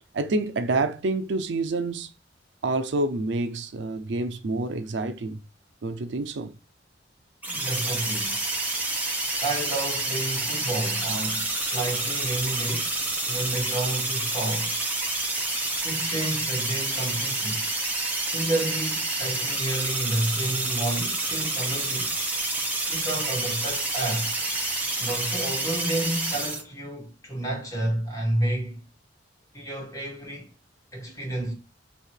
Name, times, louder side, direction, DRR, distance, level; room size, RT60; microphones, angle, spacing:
voice 1, 0.1-2.1 2.6-5.4 5.8-6.5, right 2 dB, 75° right, 0.5 m, -27 dB
sound 1, 7.4-26.6, right 2 dB, 10° right, 1.0 m, -28 dB
voice 2, 7.5-8.4 9.4-14.8 15.8-17.7 18.2-22.1 22.9-24.3 25.0-28.8 29.5-30.5 30.9-31.5, right 1 dB, 20° left, 1.6 m, -30 dB
3.2 x 2.8 x 4.4 m
head